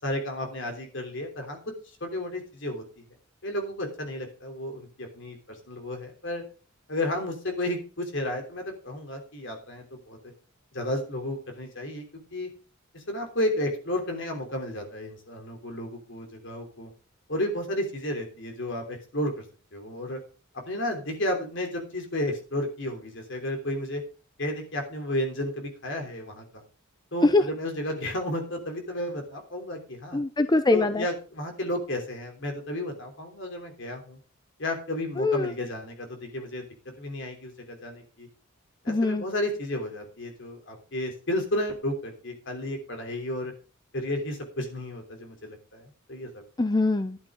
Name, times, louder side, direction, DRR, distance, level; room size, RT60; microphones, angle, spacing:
voice 1, 0.0-1.7 2.0-2.8 3.4-6.4 6.9-10.2 10.7-12.1 12.3-12.5 12.9-16.9 17.3-19.4 19.7-20.2 20.7-24.0 24.4-26.6 27.1-30.2 30.7-34.2 34.6-36.6 37.0-38.3 38.8-43.5 43.9-46.4, left 1 dB, 65° left, 3 dB, 3.3 m, -32 dB
voice 2, 30.1-31.0 35.2-35.5 38.9-39.2 46.6-47.2, left 2 dB, 20° left, 10 dB, 0.5 m, -23 dB
12.0 x 10.5 x 3.7 m, 0.36 s
head